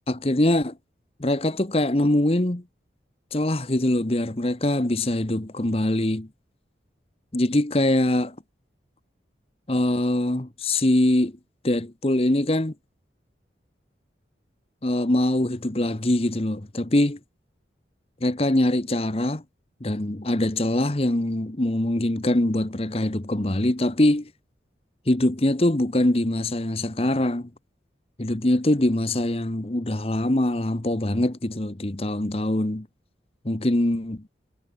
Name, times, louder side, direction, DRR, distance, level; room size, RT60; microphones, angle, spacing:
voice 1, 0.1-0.7 1.2-2.6 3.3-6.3 7.3-8.3 9.7-11.3 11.6-12.7 14.8-17.2 18.2-19.4 19.8-24.3 25.1-27.5 28.2-32.9 33.4-34.2, left 1 dB, 30° left, 1.1 m, -23 dB
head